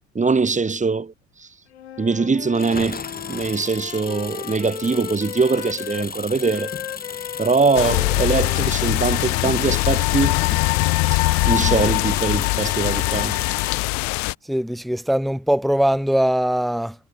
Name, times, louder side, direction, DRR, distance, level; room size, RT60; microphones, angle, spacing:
voice 1, 0.1-1.1 2.0-3.0 3.3-6.7 7.4-10.4 11.1-11.2 11.5-13.4, right 4 dB, 20° right, 3.9 m, -22 dB
Wind instrument woodwind instrument, 1.7-6.1 6.4-11.2, left 11 dB, 80° left, 7.0 m, -37 dB
Engine, 2.5-14.2, left 6 dB, 25° left, 2.5 m, -35 dB
sound 1, 7.7-14.3, left 28 dB, 60° left, 1.0 m, -21 dB
voice 2, 14.5-16.9, equal, ahead, 1.6 m, -21 dB
figure-of-eight pair, 55°, 32 cm